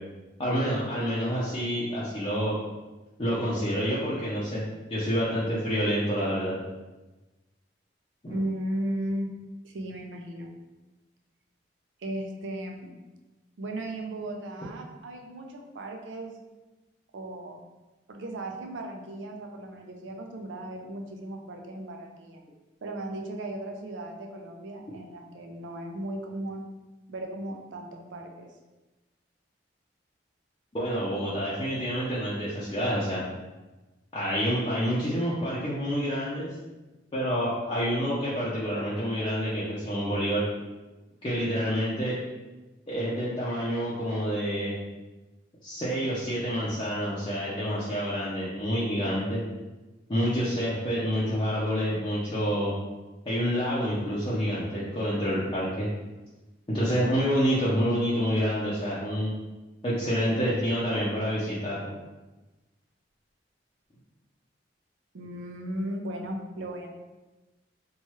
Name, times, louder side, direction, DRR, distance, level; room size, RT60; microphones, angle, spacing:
voice 1, 0.4-2.6 3.2-4.6 4.9-6.6 8.2-8.4 30.7-33.2 34.1-36.5 37.1-40.4 41.2-42.2 42.9-44.7 45.6-49.4 50.1-52.7 53.3-55.9 56.7-59.3 59.8-61.9, equal, 25° left, -9 dB, 0.5 m, -28 dB
voice 2, 8.3-9.3 9.6-10.5 12.0-12.9 13.6-16.3 17.1-17.6 18.1-22.4 22.8-26.6 27.1-28.5 65.1-66.9, right 1 dB, 90° right, 3 dB, 0.5 m, -36 dB
2.9 x 2.3 x 3.0 m, 1.1 s
head